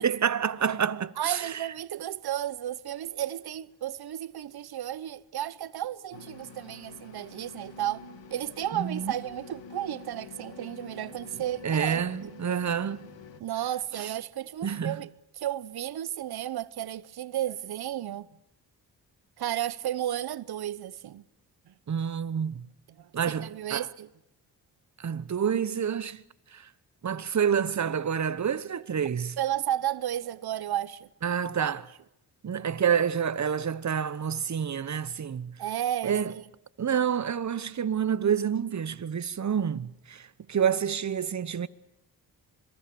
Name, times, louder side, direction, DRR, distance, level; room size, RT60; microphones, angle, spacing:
voice 1, 0.0-1.7 8.7-9.1 11.6-13.1 13.9-14.1 14.6-15.0 21.9-22.6 23.1-23.9 25.0-26.2 26.5-26.7 27.0-29.4 31.2-31.8 32.4-35.5 36.0-36.3 36.8-41.7, right 8 dB, 40° right, 1.1 m, -28 dB
voice 2, 1.2-8.0 8.3-12.0 13.4-15.1 15.4-18.3 19.4-21.2 21.7-21.8 23.0-24.1 29.4-31.1 31.6-31.7 35.6-36.2, right 12 dB, 60° right, 0.9 m, -33 dB
sound 1, 6.1-13.4, left 3 dB, 85° left, 2.2 m, -47 dB
26.0 x 22.5 x 7.0 m
supercardioid pair, 60°, 42 cm